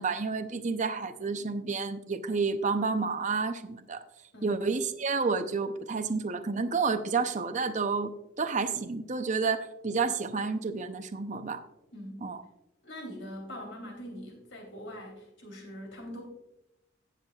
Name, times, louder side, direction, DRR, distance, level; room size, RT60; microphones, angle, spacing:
voice 1, 0.0-4.0 4.4-8.1 8.4-11.6 12.2-12.4, right 4 dB, 40° right, 9 dB, 0.6 m, -30 dB
voice 2, 11.9-12.2 12.8-16.2, equal, 70° left, 1 dB, 3.2 m, -42 dB
17.5 x 7.3 x 2.3 m, 0.93 s
head